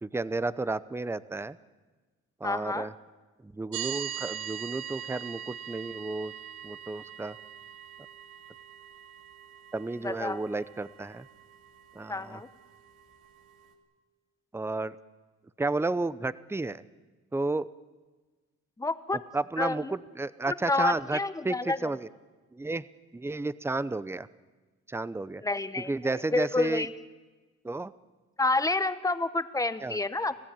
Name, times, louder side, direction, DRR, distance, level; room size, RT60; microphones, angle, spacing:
voice 1, 0.0-1.6 2.4-2.9 3.4-6.3 6.6-7.4 9.7-11.3 11.9-12.4 14.5-15.0 15.6-16.8 17.3-17.7 19.3-21.2 21.4-22.1 22.5-22.9 23.1-24.3 24.9-25.4 25.9-26.9 27.6-27.9 29.8-30.0, right 2 dB, 10° right, 16 dB, 0.7 m, -32 dB
voice 2, 2.4-2.9 10.0-10.4 12.1-12.5 18.8-19.2 19.6-19.9 20.5-21.9 25.4-26.9 28.4-30.4, left 2 dB, 10° left, 12 dB, 1.0 m, -29 dB
sound 1, 3.7-13.7, right 10 dB, 85° right, 2.5 m, -42 dB
26.0 x 15.5 x 8.8 m, 1.3 s
cardioid pair, 90°, 30 cm